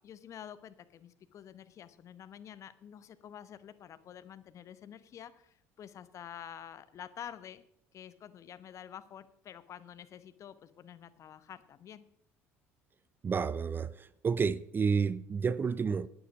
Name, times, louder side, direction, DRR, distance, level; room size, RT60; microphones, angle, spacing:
voice 1, 0.0-7.6 7.9-12.0, left 9 dB, 45° left, 0.9 m, -49 dB
voice 2, 13.2-16.1, right 5 dB, 30° right, 0.5 m, -30 dB
12.0 x 9.1 x 5.1 m
figure-of-eight pair, 60°, 7 cm